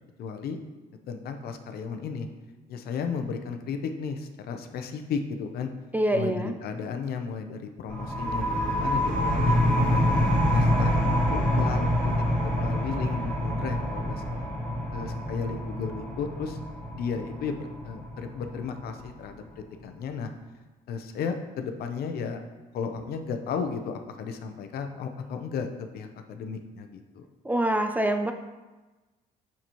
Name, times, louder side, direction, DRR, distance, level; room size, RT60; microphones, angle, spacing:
voice 1, 0.2-0.6 1.1-2.3 2.7-5.7 6.1-10.0 10.5-14.5 14.9-16.6 16.9-20.3 20.9-22.4 22.7-25.7 25.9-27.2, left 6 dB, 65° left, 6 dB, 0.7 m, -34 dB
voice 2, 5.9-6.5 27.4-28.3, right 1 dB, 10° right, 6 dB, 0.4 m, -25 dB
sound 1, 7.9-19.3, equal, 10° left, 1.7 m, -26 dB
6.7 x 5.9 x 3.0 m, 1.2 s
cardioid pair, 110°, 17 cm